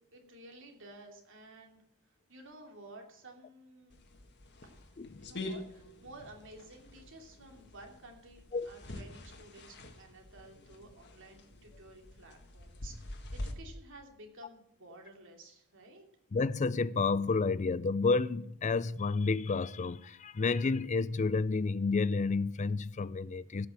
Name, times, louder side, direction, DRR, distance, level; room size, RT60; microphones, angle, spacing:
voice 1, 0.1-1.8 2.3-3.9 4.6-16.1, right 2 dB, 60° right, 2.8 m, -53 dB
sound 1, 3.9-13.5, left 1 dB, 50° left, 1.7 m, -46 dB
voice 2, 16.3-23.7, left 4 dB, 35° left, 0.4 m, -30 dB
16.0 x 6.1 x 7.4 m
head